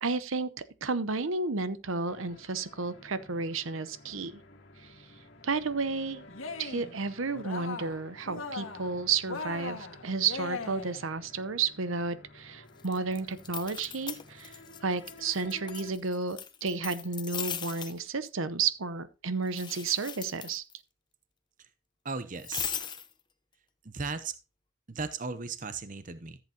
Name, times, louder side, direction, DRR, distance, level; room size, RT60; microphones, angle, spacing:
voice 1, 0.0-0.5 0.8-4.4 4.8-4.9 5.4-6.2 6.6-20.6, right 4 dB, 75° right, 0.9 m, -32 dB
sound 1, 2.1-15.9, left 2 dB, 55° left, 2.6 m, -53 dB
Cheering, 6.3-6.9 7.3-8.0 8.3-8.9 9.3-11.0, left 4 dB, 80° left, 1.7 m, -39 dB
sound 2, 12.8-14.8 15.1-18.0 19.5-20.8 22.4-23.1, left 8 dB, 20° left, 0.8 m, -39 dB
voice 2, 22.0-22.7 23.8-24.3 24.9-26.4, right 4 dB, 40° right, 0.8 m, -36 dB
14.0 x 8.0 x 2.8 m
head